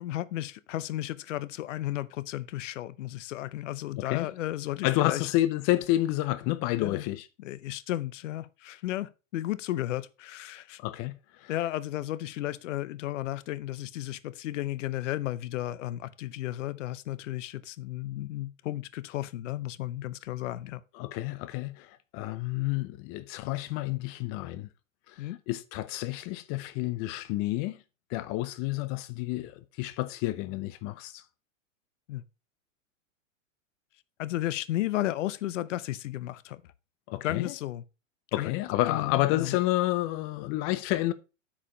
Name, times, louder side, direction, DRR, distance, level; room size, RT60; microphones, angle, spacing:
voice 1, 0.0-5.3 6.8-7.0 7.4-10.8 11.5-20.8 25.2-25.4 32.1-32.2 34.2-36.6 37.2-37.8 38.4-38.5 38.9-39.6, left 14 dB, 65° left, 0.8 m, -34 dB
voice 2, 4.0-4.3 4.8-7.3 10.8-11.5 20.9-24.7 25.1-27.8 28.1-31.2 37.1-37.5 38.3-41.1, left 16 dB, 35° left, 0.7 m, -30 dB
8.7 x 5.0 x 5.0 m
hypercardioid pair, 120°, 39 cm